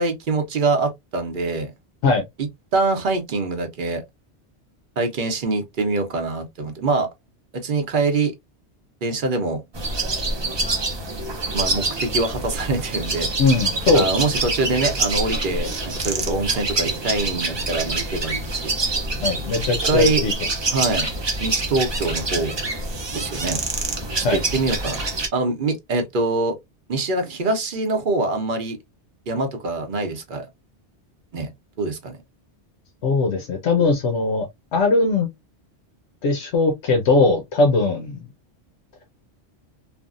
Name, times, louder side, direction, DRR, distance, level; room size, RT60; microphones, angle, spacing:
voice 1, 0.0-1.7 2.4-2.5 2.7-4.0 5.0-7.1 7.5-8.3 9.0-9.6 11.5-13.3 13.9-18.7 19.8-20.2 20.7-21.1 21.4-22.6 23.1-23.6 24.3-25.0 25.3-26.6 26.9-28.8 29.3-30.4 31.3-31.5 31.8-32.2, right 3 dB, 50° right, 0.8 m, -24 dB
sound 1, 9.7-25.3, right 2 dB, 35° right, 0.5 m, -26 dB
voice 2, 13.4-14.0 19.2-20.3 24.2-24.4 33.0-35.3 36.2-38.2, left 3 dB, 80° left, 1.0 m, -20 dB
3.3 x 2.1 x 2.4 m
omnidirectional pair, 1.2 m